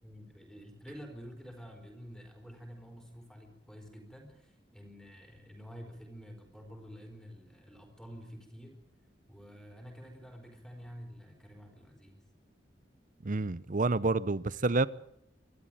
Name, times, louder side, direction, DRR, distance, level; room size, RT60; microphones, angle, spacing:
voice 1, 0.0-8.8 9.3-12.2, equal, 5° left, 4.6 m, -49 dB
voice 2, 13.2-14.9, right 3 dB, 45° right, 0.7 m, -28 dB
24.0 x 13.0 x 9.2 m
head